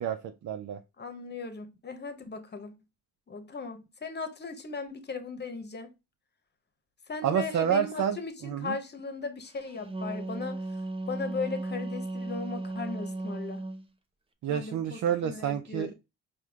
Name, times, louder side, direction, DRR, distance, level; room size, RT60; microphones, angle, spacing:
voice 1, 0.0-0.8 7.2-8.2 8.4-8.8 14.4-15.9, right 9 dB, 65° right, 0.5 m, -29 dB
voice 2, 1.0-2.8 3.3-5.9 7.1-10.8 11.1-13.6 14.5-15.9, left 4 dB, 35° left, 1.0 m, -37 dB
Wind instrument woodwind instrument, 9.6-13.8, right 2 dB, 20° right, 0.7 m, -35 dB
4.8 x 2.2 x 3.4 m
cardioid pair, 65°, 31 cm